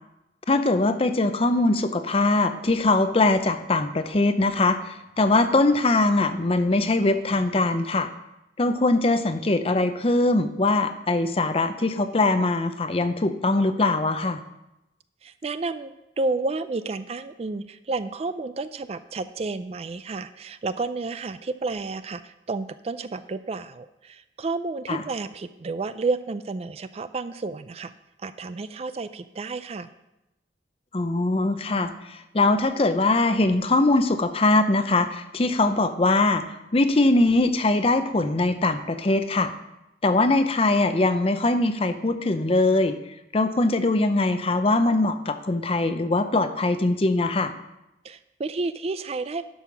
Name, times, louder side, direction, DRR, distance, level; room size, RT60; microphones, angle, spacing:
voice 1, 0.5-8.1 8.6-14.4 24.9-25.0 30.9-36.4 36.7-39.5 40.0-43.0 43.3-47.5, left 2 dB, 30° left, 9 dB, 0.6 m, -22 dB
voice 2, 15.2-27.9 28.2-29.9 48.0-49.4, right 3 dB, 35° right, 12 dB, 0.3 m, -31 dB
11.0 x 5.6 x 6.0 m, 0.91 s
head